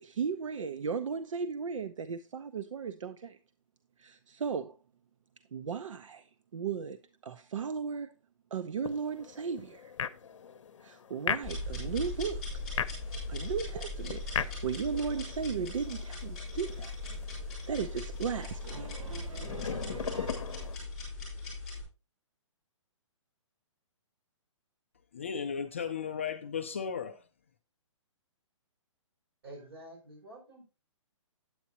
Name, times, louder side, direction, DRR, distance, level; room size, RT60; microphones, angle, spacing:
voice 1, 0.0-3.4 4.0-4.8 5.5-8.1 8.5-9.9 10.8-12.5 13.3-16.9 17.7-20.9, right 6 dB, 75° right, 0.7 m, -36 dB
sound 1, 8.8-20.8, left 7 dB, 65° left, 0.7 m, -40 dB
sound 2, 11.4-21.8, left 2 dB, ahead, 3.8 m, -39 dB
voice 2, 25.1-27.2, left 6 dB, 25° left, 0.4 m, -35 dB
voice 3, 29.4-30.6, right 1 dB, 50° right, 5.6 m, -48 dB
9.4 x 8.7 x 2.8 m
hypercardioid pair, 175°, 17 cm